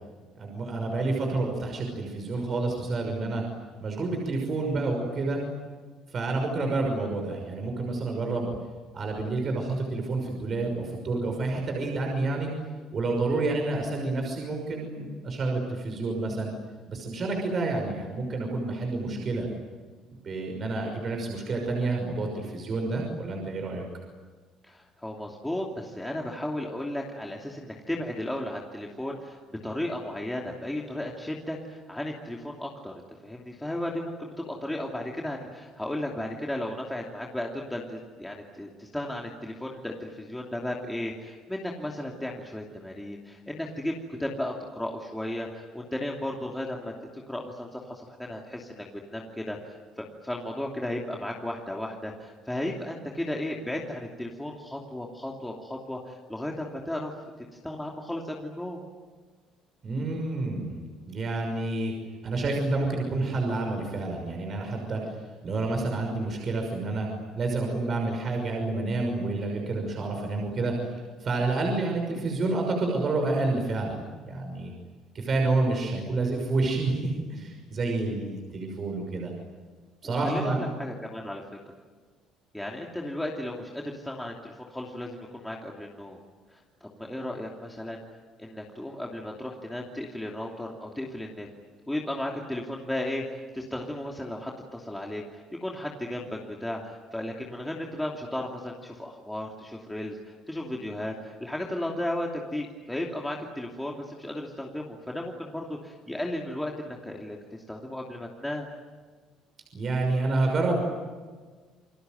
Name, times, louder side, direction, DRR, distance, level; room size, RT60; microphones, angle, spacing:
voice 1, 0.4-3.4 3.8-5.4 6.1-8.5 8.9-12.5 12.9-16.5 16.9-19.5 20.1-23.8 59.8-61.9 62.2-65.2 65.4-67.1 67.4-74.7 75.1-79.3 80.0-80.6 109.7-110.8, right 3 dB, 40° right, 2 dB, 6.0 m, -29 dB
voice 2, 24.6-32.9 33.2-43.9 44.2-57.1 57.6-58.8 80.0-81.4 82.5-86.2 86.5-88.0 88.4-91.5 91.9-108.7, left 1 dB, 5° left, -1 dB, 2.8 m, -35 dB
29.0 x 22.0 x 9.3 m, 1.4 s
cardioid pair, 125°, 0 cm